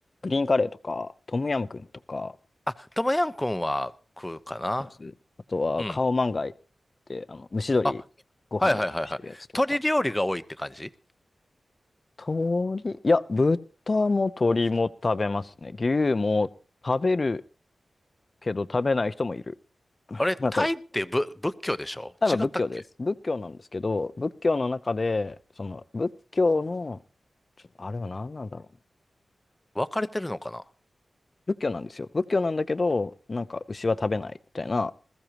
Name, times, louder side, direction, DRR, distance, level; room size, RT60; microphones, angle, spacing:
voice 1, 0.2-2.3 5.0-5.1 5.5-6.5 7.1-8.0 8.5-8.7 9.2-9.3 12.2-13.6 13.9-16.5 16.8-17.4 18.4-19.5 20.1-20.7 22.2-27.0 27.8-28.6 31.6-34.9, left 3 dB, 45° left, 0.7 m, -27 dB
voice 2, 2.7-3.9 4.2-4.9 5.8-6.0 8.6-10.9 20.2-22.4 29.7-30.6, left 1 dB, 15° left, 0.8 m, -28 dB
20.5 x 14.5 x 3.0 m
cardioid pair, 55°, 0 cm